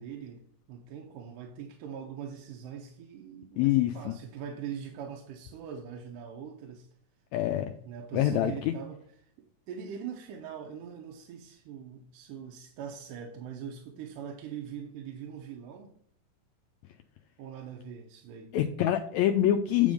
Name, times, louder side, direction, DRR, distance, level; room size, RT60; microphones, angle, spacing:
voice 1, 0.0-6.9 7.8-15.9 17.4-18.6, right 7 dB, 80° right, 2.4 m, -42 dB
voice 2, 3.6-4.1 7.3-7.7 8.1-8.7 18.5-19.9, left 11 dB, 90° left, 1.6 m, -25 dB
9.7 x 3.6 x 5.1 m
omnidirectional pair, 3.8 m